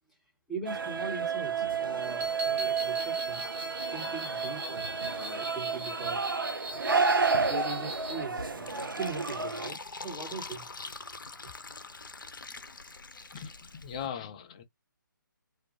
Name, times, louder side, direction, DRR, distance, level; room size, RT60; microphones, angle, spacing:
voice 1, 0.5-3.5 3.9-6.2 6.7-9.8 10.0-10.7, right 3 dB, ahead, 0.8 m, -41 dB
sound 1, 0.7-9.7, right 5 dB, 75° right, 0.5 m, -31 dB
sound 2, 2.0-8.2, right 1 dB, 35° right, 0.8 m, -40 dB
Fill (with liquid), 8.4-14.1, left 3 dB, 70° left, 0.5 m, -44 dB
voice 2, 13.3-14.6, left 8 dB, 20° left, 0.4 m, -39 dB
2.3 x 2.1 x 2.7 m
figure-of-eight pair, 140°, 11 cm